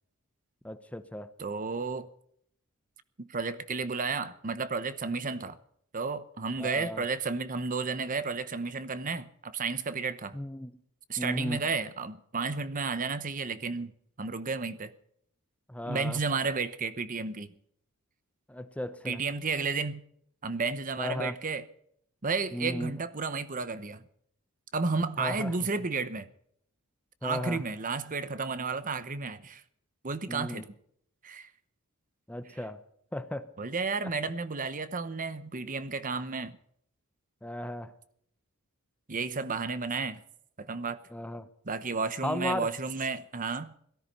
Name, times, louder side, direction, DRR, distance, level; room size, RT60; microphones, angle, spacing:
voice 1, 0.6-1.3 5.1-5.2 6.6-7.0 10.3-10.8 11.2-11.6 15.7-16.2 18.5-19.2 21.0-21.4 22.5-23.0 25.2-25.6 27.2-27.6 30.3-30.6 32.3-32.8 33.1-33.5 37.4-37.9 41.1-41.5 42.2-42.7, left 1 dB, 5° left, 0.8 m, -35 dB
voice 2, 1.4-2.1 3.2-5.6 5.9-10.4 11.1-13.9 14.2-14.9 15.9-17.5 19.0-20.0 20.4-21.6 22.2-24.0 24.7-26.3 27.2-29.6 30.0-30.6 31.2-31.5 33.6-36.6 39.1-40.2 40.6-41.0 41.7-43.7, right 4 dB, 35° right, 0.9 m, -32 dB
17.5 x 13.5 x 5.4 m
head